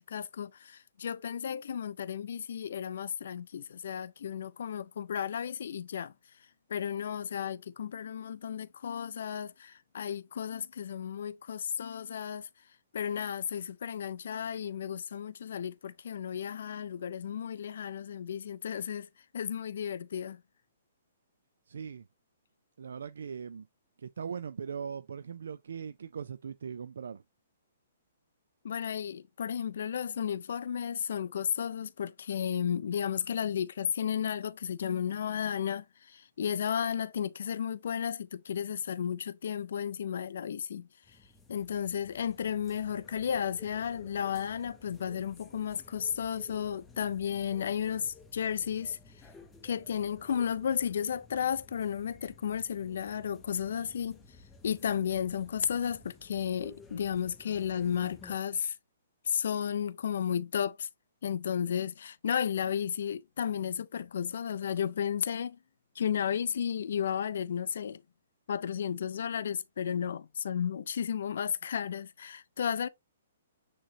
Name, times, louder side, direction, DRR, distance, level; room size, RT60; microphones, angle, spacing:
voice 1, 0.0-6.1 6.7-12.5 12.9-20.4 28.6-41.2 41.5-49.3 49.6-54.2 54.6-58.8 59.2-60.9 61.2-65.6 66.0-68.0 68.5-72.9, left 8 dB, 65° left, 0.3 m, -33 dB
voice 2, 21.7-22.1 22.8-23.7 24.0-27.2, right 6 dB, 75° right, 0.3 m, -40 dB
sound 1, 41.0-58.4, left 3 dB, 10° left, 0.6 m, -55 dB
6.6 x 3.0 x 2.7 m
hypercardioid pair, 160°, 0 cm